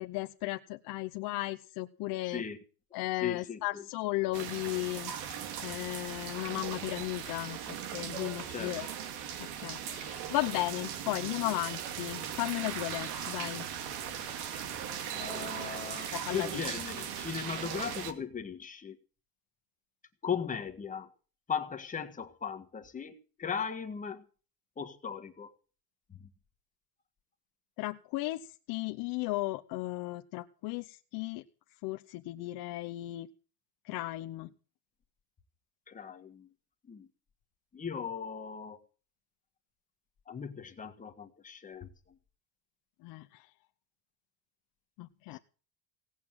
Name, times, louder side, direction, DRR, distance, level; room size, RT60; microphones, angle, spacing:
voice 1, 0.0-2.4 2.9-5.1 5.6-8.9 9.4-13.7 16.1-16.6 27.8-31.4 31.8-33.3 33.9-34.5 43.0-43.5 45.0-45.4, left 19 dB, 50° left, 0.9 m, -35 dB
voice 2, 2.2-2.6 3.2-3.8 8.5-8.8 15.1-19.0 20.2-21.1 21.5-24.3 24.8-25.5 26.1-26.3 35.9-36.5 36.9-37.1 37.7-38.8 40.3-42.2 45.3-45.4, left 7 dB, 15° left, 1.6 m, -38 dB
sound 1, 4.3-18.1, right 9 dB, 80° right, 2.6 m, -39 dB
17.5 x 8.5 x 7.4 m
cardioid pair, 165°, 45 cm